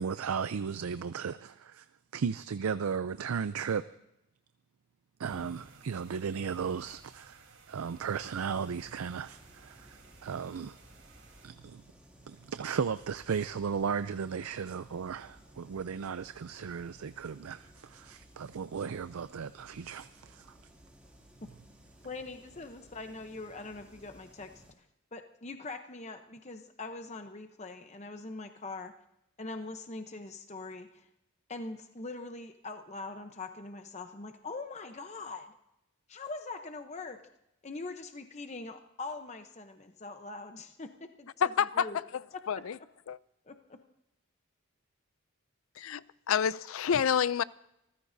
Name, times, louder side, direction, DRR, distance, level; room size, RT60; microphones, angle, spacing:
voice 1, 0.0-1.9 2.1-3.8 5.2-7.4 7.7-10.8 11.4-11.8 12.3-20.5, right 6 dB, 90° right, 0.5 m, -35 dB
sound 1, 5.2-11.5, right 3 dB, 70° right, 3.6 m, -57 dB
sound 2, 8.0-24.7, equal, 5° right, 2.6 m, -58 dB
voice 2, 22.0-24.6 25.1-28.9 29.4-31.1 31.5-35.5 36.1-37.2 37.6-42.0 42.3-42.6 43.4-43.8, left 3 dB, 30° left, 0.8 m, -42 dB
voice 3, 41.4-41.9 42.5-42.8 43.1-43.2 45.8-47.4, left 7 dB, 70° left, 0.4 m, -28 dB
26.5 x 15.0 x 2.7 m
head